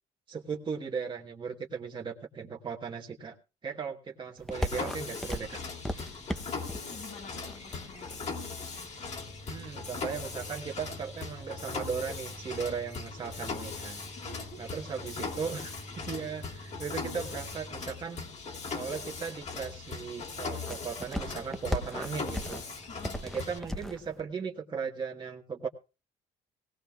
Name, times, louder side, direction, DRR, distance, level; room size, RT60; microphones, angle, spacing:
voice 1, 0.3-3.3 3.6-5.6 9.5-14.0 14.6-18.2 18.7-22.6 23.2-25.7, right 6 dB, 30° right, 0 dB, 1.3 m, -37 dB
sound 1, 4.4-24.2, left 1 dB, 5° left, 0.7 m, -42 dB
Mechanisms, 4.5-23.6, left 4 dB, 45° left, 2.9 m, -39 dB
voice 2, 6.7-8.2 14.2-14.7 22.9-23.2, left 3 dB, 60° left, 5 dB, 6.0 m, -49 dB
18.0 x 17.0 x 2.3 m, 0.30 s
cardioid pair, 110°, 17 cm